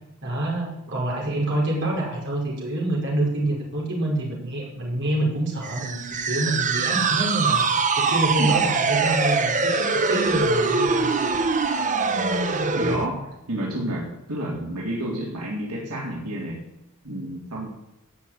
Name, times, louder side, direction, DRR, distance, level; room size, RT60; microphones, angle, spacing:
voice 1, 0.2-7.6 7.9-11.1, right 1 dB, 55° right, -3 dB, 5.3 m, -26 dB
sound 1, 5.6-13.1, right 4 dB, 35° right, 1.0 m, -23 dB
voice 2, 8.4-8.7 12.7-16.6 17.0-17.7, right 1 dB, 90° right, -3 dB, 3.9 m, -30 dB
17.0 x 6.4 x 8.9 m, 0.88 s
head